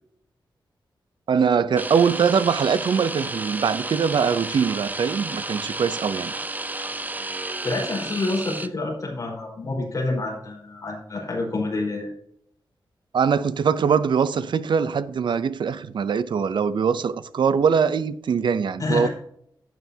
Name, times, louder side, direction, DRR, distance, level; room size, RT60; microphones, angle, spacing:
voice 1, 1.3-6.3 13.1-19.1, right 6 dB, 70° right, 0.5 m, -22 dB
sound 1, 1.8-8.7, right 2 dB, 20° right, 0.5 m, -32 dB
voice 2, 7.6-12.1 18.8-19.1, left 2 dB, 45° left, 4.6 m, -27 dB
12.0 x 9.4 x 2.8 m
wide cardioid pair, 130°, 8 cm